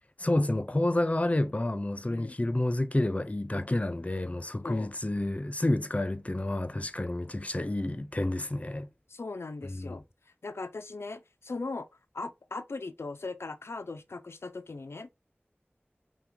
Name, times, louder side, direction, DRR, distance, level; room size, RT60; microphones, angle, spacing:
voice 1, 0.2-8.9 9.6-10.0, left 1 dB, 35° left, 0.6 m, -29 dB
voice 2, 9.1-10.0 10.4-11.9 12.1-15.1, left 3 dB, 90° left, 0.4 m, -39 dB
5.7 x 2.3 x 3.7 m
wide cardioid pair, 40°, 4 cm